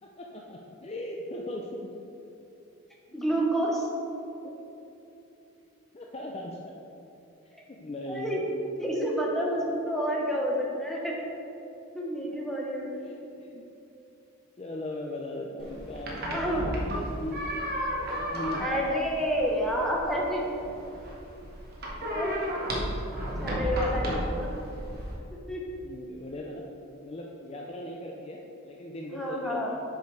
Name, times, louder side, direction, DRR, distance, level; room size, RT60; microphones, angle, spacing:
voice 1, 0.0-2.0 3.1-3.3 4.4-4.5 5.9-6.7 7.7-8.4 12.7-13.7 14.6-17.4 18.2-18.7 19.6-19.9 22.0-23.6 24.0-24.3 25.8-26.7 27.0-29.8, left 1 dB, 30° left, -1 dB, 0.4 m, -39 dB
voice 2, 3.1-3.9 7.5-7.6 8.1-8.4 8.8-11.3 11.9-13.0 16.2-16.7 16.9-17.0 18.6-20.5 22.1-22.4 23.4-24.5 25.3-25.6 29.1-29.8, equal, ahead, -3 dB, 0.9 m, -29 dB
sound 1, 15.6-25.1, equal, 45° right, 1.1 m, -33 dB
6.9 x 4.9 x 4.6 m, 2.9 s
head